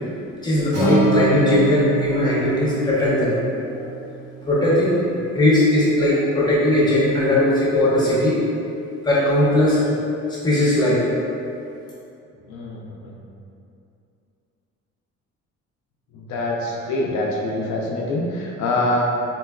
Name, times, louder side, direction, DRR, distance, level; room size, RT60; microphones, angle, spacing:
voice 1, 0.4-3.4 3.7-3.8 4.4-5.0 5.3-8.4 9.0-9.8 10.3-11.1, left 1 dB, 15° left, -7 dB, 0.7 m, -18 dB
Acoustic guitar, 0.7-4.9, right 3 dB, 90° right, 1.0 m, -26 dB
voice 2, 12.5-13.1 16.1-19.0, left 2 dB, 70° left, -2 dB, 0.5 m, -25 dB
3.8 x 2.3 x 2.2 m, 2.6 s
cardioid pair, 120°, 30 cm